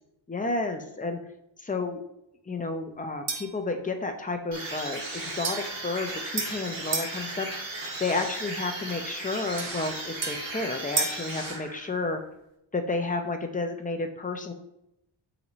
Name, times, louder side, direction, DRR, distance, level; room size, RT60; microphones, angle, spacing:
voice 1, 0.3-1.2 1.6-2.0 2.5-7.5 8.0-12.2 12.7-14.5, left 3 dB, 15° left, 5 dB, 0.6 m, -31 dB
sound 1, 3.3-3.6 5.4-7.2 9.6-11.3, right 3 dB, 35° right, 0.7 m, -33 dB
sound 2, 4.5-12.0, right 2 dB, 65° right, 2.2 m, -36 dB
6.0 x 5.4 x 3.1 m, 0.83 s
wide cardioid pair, 135°, 49 cm